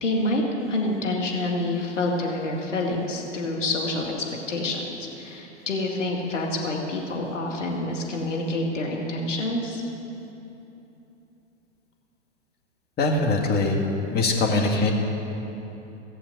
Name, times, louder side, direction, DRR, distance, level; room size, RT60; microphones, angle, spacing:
voice 1, 0.0-4.1 4.5-9.8, left 2 dB, 85° left, -1 dB, 2.2 m, -27 dB
voice 2, 13.0-13.8 14.1-14.9, left 2 dB, 25° left, 0 dB, 2.1 m, -22 dB
17.0 x 7.2 x 8.1 m, 3.0 s
hypercardioid pair, 105°, 36 cm